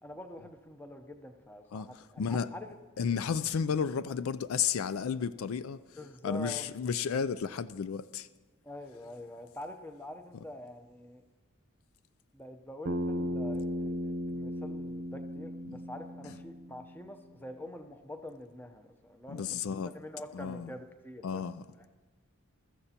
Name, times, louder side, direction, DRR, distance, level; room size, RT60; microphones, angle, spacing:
voice 1, 0.0-2.8 6.0-6.7 8.6-11.2 12.3-21.4 21.7-21.8, left 1 dB, 10° left, 0.7 m, -46 dB
voice 2, 1.7-2.5 3.0-5.8 6.2-8.3 15.7-15.8 19.3-19.9 20.3-20.7 21.2-21.6, left 6 dB, 70° left, 0.4 m, -32 dB
Bass guitar, 12.9-17.2, equal, 55° right, 0.8 m, -36 dB
22.0 x 14.0 x 2.9 m
head